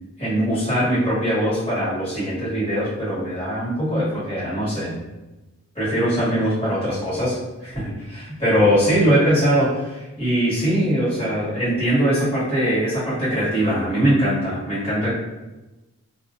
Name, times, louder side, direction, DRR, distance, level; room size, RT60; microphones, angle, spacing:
voice 1, 0.2-5.0 5.7-15.1, equal, 25° left, -11 dB, 1.4 m, -21 dB
2.8 x 2.4 x 2.4 m, 1.1 s
head